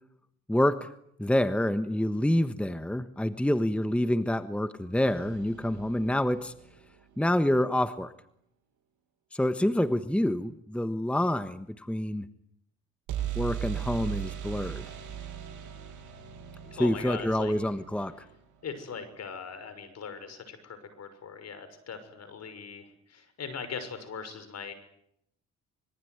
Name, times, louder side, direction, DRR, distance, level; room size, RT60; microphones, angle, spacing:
voice 1, 0.5-0.9 1.2-6.5 7.2-8.1 9.3-12.3 13.3-14.8 16.8-18.2, left 1 dB, 5° left, 11 dB, 1.3 m, -27 dB
sound 1, 5.0-7.0 13.1-18.9, right 10 dB, 75° right, 7.8 m, -39 dB
voice 2, 16.6-17.5 18.6-24.7, left 6 dB, 60° left, 11 dB, 6.3 m, -40 dB
26.0 x 22.5 x 9.6 m, 0.73 s
cardioid pair, 90°, 30 cm